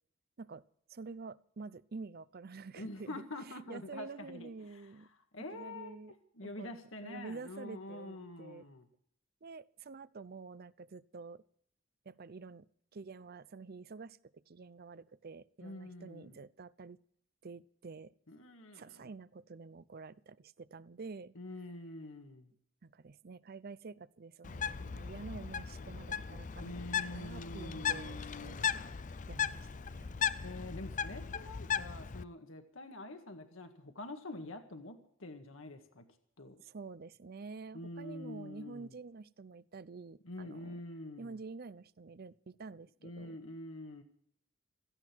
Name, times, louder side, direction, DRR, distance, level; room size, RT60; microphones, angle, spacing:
voice 1, 0.9-3.2 3.7-5.1 5.5-6.1 6.4-6.7 7.0-8.6 9.4-11.4 12.1-12.7 12.9-14.2 14.5-17.0 17.4-18.1 18.7-21.3 22.8-28.6 29.3-30.2 36.6-40.7 41.2-43.4, right 4 dB, 45° right, 18 dB, 0.5 m, -48 dB
voice 2, 2.8-5.1 5.3-6.0 6.3-8.9 15.6-16.4 18.3-19.0 21.4-22.5 26.6-28.7 30.4-36.0 36.4-36.6 37.7-38.9 40.2-41.4 43.0-44.0, left 2 dB, 75° left, 6 dB, 1.9 m, -46 dB
Bird, 24.4-32.2, left 7 dB, 40° left, 0.5 m, -37 dB
16.5 x 14.5 x 4.6 m, 0.67 s
head